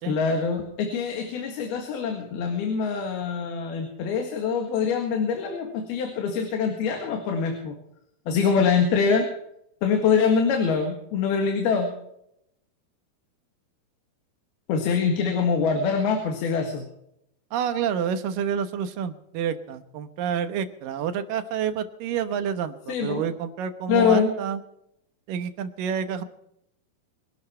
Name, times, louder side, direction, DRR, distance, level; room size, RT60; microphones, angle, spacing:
voice 1, 0.1-7.8 8.3-9.3 9.8-11.9 14.7-16.8 22.9-23.3 23.9-24.3, left 5 dB, 90° left, 3 dB, 3.8 m, -24 dB
voice 2, 17.5-24.6 25.3-26.2, right 8 dB, 70° right, 10 dB, 2.7 m, -28 dB
24.0 x 12.0 x 4.4 m, 0.78 s
omnidirectional pair, 4.3 m